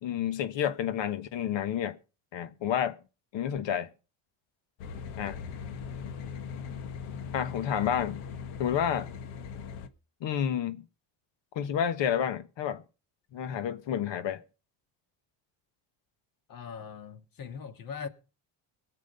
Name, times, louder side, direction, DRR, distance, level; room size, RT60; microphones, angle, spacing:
voice 1, 0.0-2.0 2.3-3.0 3.3-3.9 5.2-5.4 7.3-8.2 8.6-9.1 10.2-10.8 11.5-12.8 13.3-14.4, left 9 dB, 65° left, 1.4 m, -30 dB
sound 1, 4.8-9.9, left 6 dB, 85° left, 1.5 m, -40 dB
voice 2, 16.5-18.1, left 6 dB, 45° left, 1.9 m, -41 dB
21.5 x 7.6 x 5.4 m
cardioid pair, 120°, 48 cm